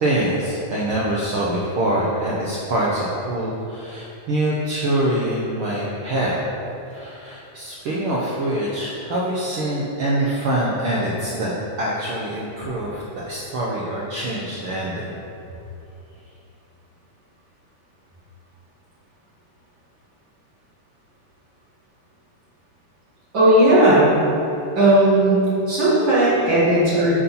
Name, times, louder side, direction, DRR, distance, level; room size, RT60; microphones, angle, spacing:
voice 1, 0.0-6.3 6.9-11.5 11.8-15.1, right 1 dB, 85° right, -5 dB, 1.1 m, -24 dB
voice 2, 23.3-24.1 24.8-25.4 25.7-27.2, right 1 dB, 45° right, -9 dB, 2.0 m, -16 dB
8.1 x 4.2 x 5.5 m, 2.8 s
omnidirectional pair, 3.5 m